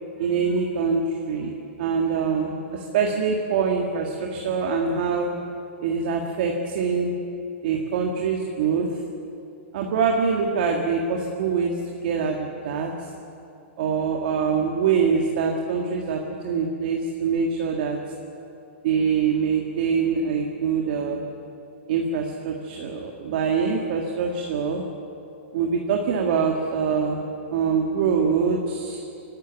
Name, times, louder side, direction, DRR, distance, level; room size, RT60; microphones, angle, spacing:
voice 1, 0.2-1.5 1.8-5.3 5.8-7.1 7.6-9.0 9.7-13.1 13.8-18.0 18.8-21.2 21.9-24.9 25.5-27.2 27.5-29.0, right 5 dB, 50° right, 1 dB, 1.9 m, -24 dB
24.5 x 12.5 x 9.3 m, 2.7 s
hypercardioid pair, 170°, 7 cm